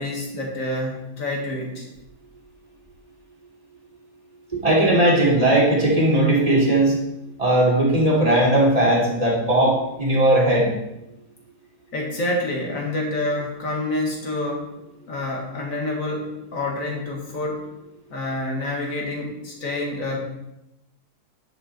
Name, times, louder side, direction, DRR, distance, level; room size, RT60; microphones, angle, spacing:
voice 1, 0.0-1.9 11.9-14.7 15.1-17.7 18.1-20.2, left 2 dB, 55° left, -1 dB, 2.4 m, -27 dB
voice 2, 4.5-7.0 7.4-10.7, right 1 dB, 20° right, -5 dB, 3.2 m, -18 dB
9.7 x 6.7 x 4.4 m, 0.89 s
omnidirectional pair, 1.6 m